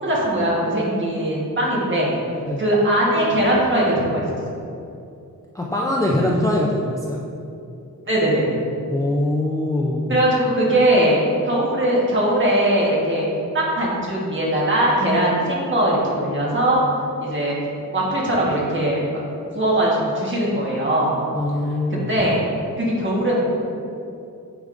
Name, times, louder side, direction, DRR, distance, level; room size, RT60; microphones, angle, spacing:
voice 1, 0.0-2.2 2.6-4.2 8.0-8.5 10.1-13.3 13.5-16.8 17.2-17.6 17.9-19.0 19.5-21.2 21.9-22.4 22.8-23.4, right 1 dB, 35° right, -5 dB, 1.4 m, -20 dB
voice 2, 5.5-7.2 8.9-10.1 21.3-22.3, left 1 dB, 10° left, -4 dB, 0.4 m, -22 dB
9.1 x 5.1 x 2.5 m, 2.6 s
wide cardioid pair, 170°, 34 cm